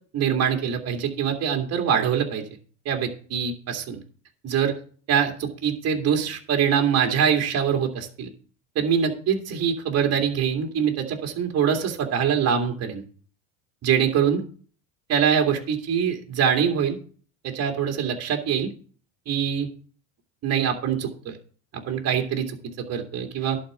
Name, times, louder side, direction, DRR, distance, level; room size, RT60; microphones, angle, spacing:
voice 1, 0.1-2.4 2.9-4.0 4.4-4.7 5.1-8.3 8.8-13.0 13.8-14.4 15.1-17.0 17.4-18.7 19.3-19.7 20.4-21.4 21.7-23.6, right 8 dB, 40° right, 2 dB, 2.4 m, -24 dB
11.5 x 4.4 x 7.6 m, 0.42 s
supercardioid pair, 125°, 39 cm